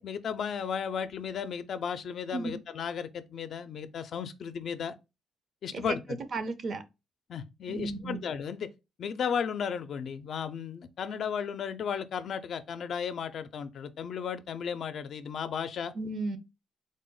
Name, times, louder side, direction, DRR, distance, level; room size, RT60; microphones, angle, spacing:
voice 1, 0.0-5.0 5.6-6.2 7.3-8.7 9.0-15.9, left 7 dB, 60° left, 0.4 m, -34 dB
voice 2, 6.3-6.8 7.7-8.2 15.9-16.4, right 3 dB, 55° right, 0.6 m, -34 dB
3.7 x 2.0 x 3.7 m
cardioid pair, 90°, 0 cm